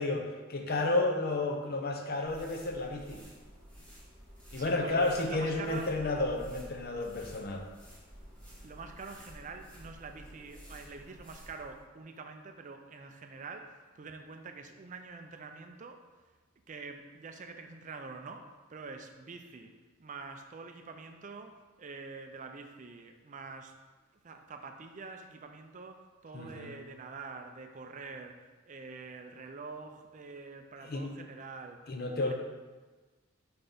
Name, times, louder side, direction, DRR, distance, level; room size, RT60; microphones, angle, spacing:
voice 1, 0.0-3.2 4.5-7.6 26.3-26.7 30.8-31.1 31.9-32.3, left 2 dB, 45° left, 3 dB, 0.7 m, -32 dB
sound 1, 2.2-11.8, equal, 5° left, 1.5 m, -51 dB
voice 2, 4.5-5.9 8.6-16.0 16.7-19.7 20.0-23.7 24.2-31.9 32.2-32.3, right 4 dB, 35° right, 6 dB, 0.4 m, -46 dB
4.3 x 4.2 x 5.1 m, 1.3 s
head